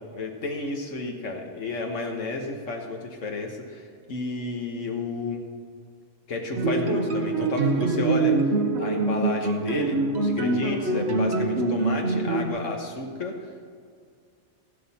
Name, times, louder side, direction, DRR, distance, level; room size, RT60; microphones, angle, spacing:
voice 1, 0.1-5.4 6.3-8.4 8.8-13.3, left 3 dB, 85° left, 1 dB, 1.7 m, -32 dB
sound 1, 6.6-12.5, right 3 dB, 60° right, 1.3 m, -24 dB
14.0 x 12.0 x 4.3 m, 2.1 s
omnidirectional pair, 1.3 m